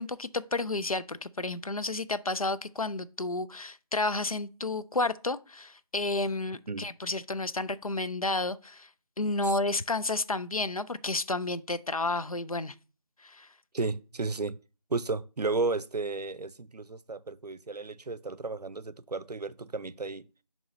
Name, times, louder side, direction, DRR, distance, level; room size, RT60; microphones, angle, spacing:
voice 1, 0.0-8.9 9.2-12.7 13.2-13.5, left 2 dB, 60° left, 0.5 m, -31 dB
voice 2, 13.7-14.6 14.9-20.3, right 3 dB, 85° right, 0.5 m, -33 dB
6.7 x 3.1 x 5.3 m
figure-of-eight pair, 180°, 20 cm